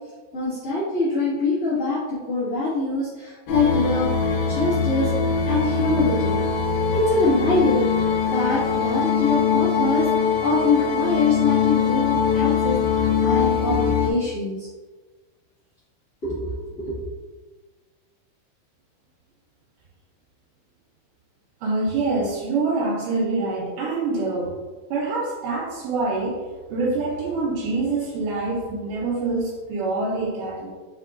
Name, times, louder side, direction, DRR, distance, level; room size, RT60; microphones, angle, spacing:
voice 1, 0.3-4.1 4.5-5.1 5.4-6.4 6.9-14.7 16.2-17.1, left 3 dB, 55° left, -15 dB, 0.7 m, -24 dB
sound 1, 3.5-14.1, left 6 dB, 80° left, 1.8 m, -22 dB
voice 2, 21.6-24.6 24.9-26.5 26.7-30.7, right 3 dB, 80° right, -1 dB, 2.1 m, -25 dB
4.4 x 4.1 x 2.4 m, 1.3 s
omnidirectional pair, 3.9 m